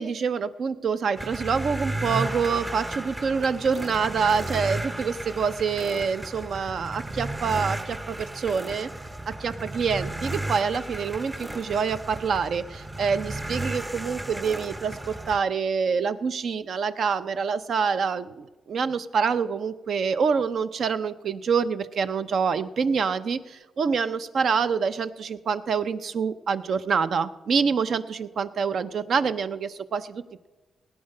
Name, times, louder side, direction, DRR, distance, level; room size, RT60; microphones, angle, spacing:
voice 1, 0.0-8.9 9.3-30.5, right 5 dB, 60° right, 12 dB, 0.6 m, -26 dB
sound 1, 1.2-15.4, right 1 dB, 15° right, 0.7 m, -34 dB
18.0 x 9.7 x 5.4 m, 1.2 s
cardioid pair, 115°, 0 cm